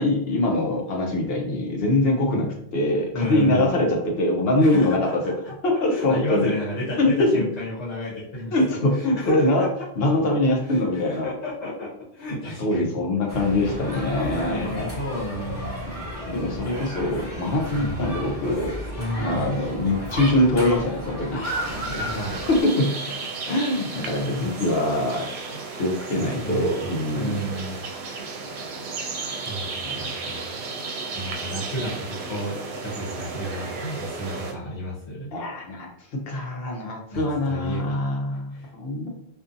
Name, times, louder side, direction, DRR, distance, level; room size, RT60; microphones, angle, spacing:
voice 1, 0.0-5.3 5.6-6.5 7.0-7.4 8.5-9.7 10.0-11.3 12.6-14.7 16.3-18.7 19.2-21.4 22.5-22.9 23.5-25.3 25.8-27.4 29.8-30.0 35.3-39.1, left 1 dB, 65° left, 1 dB, 0.8 m, -23 dB
voice 2, 3.1-3.8 4.6-5.5 5.9-8.5 8.9-9.7 10.6-12.9 14.1-16.0 17.7-18.1 19.0-19.8 21.3-22.7 23.7-24.5 25.5-25.6 26.1-27.9 29.4-30.4 31.1-32.6 32.8-35.3 37.1-38.0 38.5-38.7, equal, 90° left, -7 dB, 1.1 m, -32 dB
sound 1, 13.3-22.6, equal, 35° left, 1.1 m, -33 dB
sound 2, 21.4-34.5, right 4 dB, 75° right, 0.8 m, -34 dB
2.5 x 2.5 x 2.5 m, 0.71 s
omnidirectional pair, 1.1 m